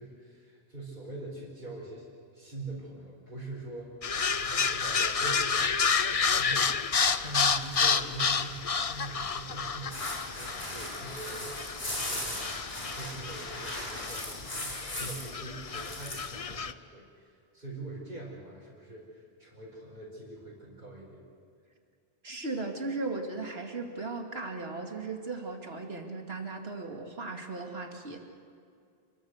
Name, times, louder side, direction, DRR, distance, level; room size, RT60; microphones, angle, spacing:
voice 1, 0.0-2.1 2.3-11.6 11.9-21.2, right 2 dB, 50° right, -7 dB, 5.3 m, -44 dB
sound 1, 4.0-16.7, left 5 dB, 40° left, 0.7 m, -30 dB
sound 2, 9.9-15.3 15.6-16.3, left 1 dB, 70° left, 5.5 m, -38 dB
voice 2, 22.2-28.2, right 3 dB, 80° right, 2 dB, 2.8 m, -37 dB
29.5 x 23.0 x 6.6 m, 2.3 s
omnidirectional pair, 1.0 m